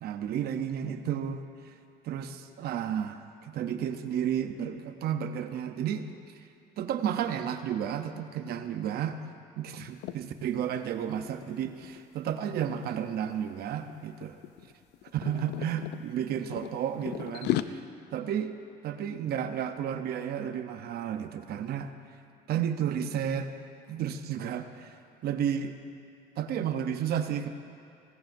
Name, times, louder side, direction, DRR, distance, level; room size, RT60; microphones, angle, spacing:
voice 1, 0.0-1.4 2.0-6.1 6.8-14.4 15.1-17.8 18.1-18.5 18.8-21.9 22.5-23.5 23.9-25.0 25.2-25.8 26.4-27.5, right 9 dB, 65° right, 8 dB, 0.8 m, -32 dB
sound 1, 9.9-10.2 10.6-10.8 11.1-13.0 13.6-13.9 14.2-16.0 16.5-17.6, left 14 dB, 80° left, 0.4 m, -34 dB
17.0 x 15.0 x 2.6 m, 2.4 s
cardioid pair, 110°, 17 cm